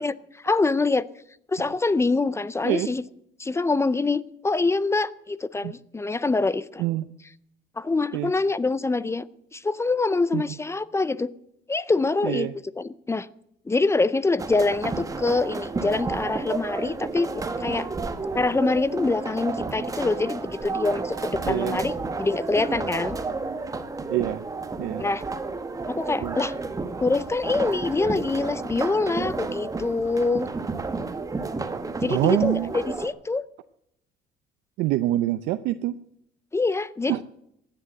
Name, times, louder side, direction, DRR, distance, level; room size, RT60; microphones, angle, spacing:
voice 1, 0.4-1.1 1.5-3.0 3.4-6.8 7.8-9.3 9.5-11.3 11.7-12.5 12.8-13.3 13.7-17.9 18.3-23.2 25.0-25.2 25.9-26.5 27.0-30.5 32.0-33.5 36.5-37.2, left 3 dB, 15° left, 18 dB, 0.5 m, -25 dB
sound 1, 14.4-33.1, right 3 dB, 20° right, 1.2 m, -31 dB
voice 2, 21.4-21.8 24.1-24.5 24.8-25.1 26.2-26.4 32.1-32.7 34.8-36.0 37.1-37.2, right 15 dB, 90° right, 11 dB, 0.6 m, -25 dB
16.0 x 10.0 x 7.7 m, 0.77 s
cardioid pair, 110°, 17 cm